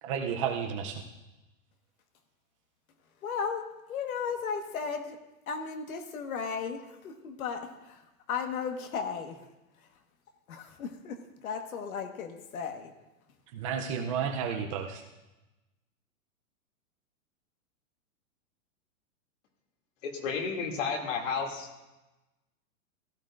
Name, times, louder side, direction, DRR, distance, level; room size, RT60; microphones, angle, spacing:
voice 1, 0.0-1.0 13.5-15.0, right 7 dB, 25° right, 3 dB, 0.5 m, -32 dB
voice 2, 3.2-5.2 5.5-9.4 10.5-12.9, left 6 dB, 80° left, 5 dB, 1.5 m, -35 dB
voice 3, 20.0-21.7, left 5 dB, 60° left, 1 dB, 2.6 m, -32 dB
16.0 x 14.0 x 2.5 m, 1.0 s
supercardioid pair, 160°, 42 cm